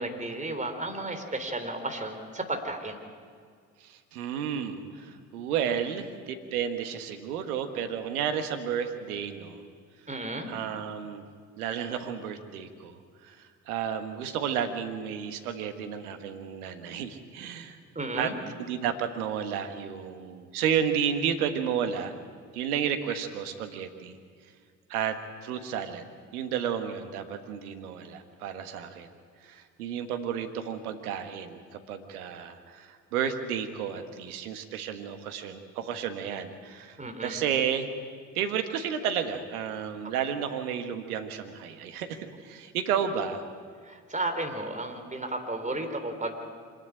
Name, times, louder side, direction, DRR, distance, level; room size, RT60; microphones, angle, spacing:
voice 1, 0.0-3.0 10.1-10.5 18.0-18.4 37.0-37.4 43.9-46.4, right 2 dB, 15° right, 5 dB, 3.5 m, -33 dB
voice 2, 3.8-9.6 10.5-11.2 11.6-17.8 18.2-18.3 18.6-22.1 22.5-24.2 24.9-26.0 26.3-29.1 29.4-37.9 38.3-43.5, right 8 dB, 80° right, 7 dB, 1.6 m, -32 dB
25.5 x 11.0 x 9.9 m, 2.1 s
hypercardioid pair, 55°, 43 cm